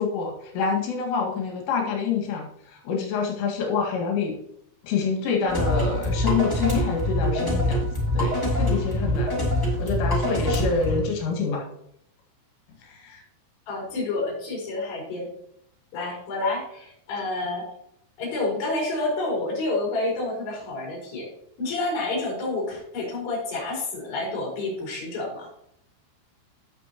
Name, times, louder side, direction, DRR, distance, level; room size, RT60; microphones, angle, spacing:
voice 1, 0.0-2.5 2.8-4.4 4.8-9.4 9.7-11.7 12.9-13.2, left 5 dB, 80° left, 1 dB, 4.5 m, -27 dB
sound 1, 5.5-11.0, left 1 dB, 5° left, 2.6 m, -24 dB
voice 2, 13.7-15.3 15.9-17.6 18.2-21.3 21.6-25.5, left 2 dB, 60° left, -3 dB, 6.8 m, -29 dB
16.5 x 6.8 x 3.0 m, 0.74 s
omnidirectional pair, 5.6 m